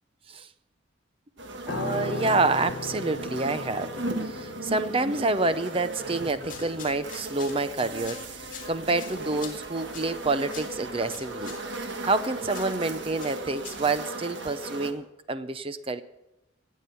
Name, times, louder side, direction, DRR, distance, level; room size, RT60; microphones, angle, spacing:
sound 1, 1.4-14.9, right 2 dB, 65° right, 1.6 m, -37 dB
Piano, 1.7-11.1 11.3-11.6, left 3 dB, 60° left, 1.1 m, -40 dB
voice 1, 1.7-3.9 4.2-11.5 11.8-16.0, right 3 dB, 30° right, 13 dB, 0.6 m, -28 dB
sound 2, 6.3-14.0, left 7 dB, 45° left, 2.1 m, -47 dB
18.0 x 7.5 x 6.8 m, 0.91 s
head